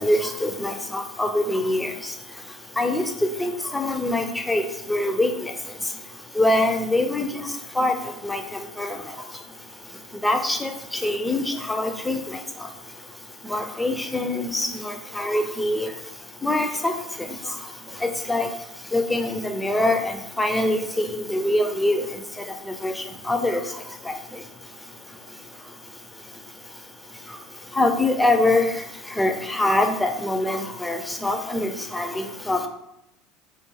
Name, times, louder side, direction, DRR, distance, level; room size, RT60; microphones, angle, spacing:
voice 1, 0.0-1.9 2.8-3.0 3.4-4.6 4.9-5.5 6.4-7.5 7.8-7.9 8.2-8.4 8.8-9.0 10.2-10.7 11.0-12.2 13.5-15.9 16.4-16.9 18.0-18.5 18.9-20.0 20.4-22.0 22.8-22.9 23.3-23.6 27.8-28.7 29.2-32.7, left 1 dB, 10° left, 5 dB, 0.4 m, -23 dB
2.3 x 2.1 x 3.1 m, 0.81 s
hypercardioid pair, 70°, 0 cm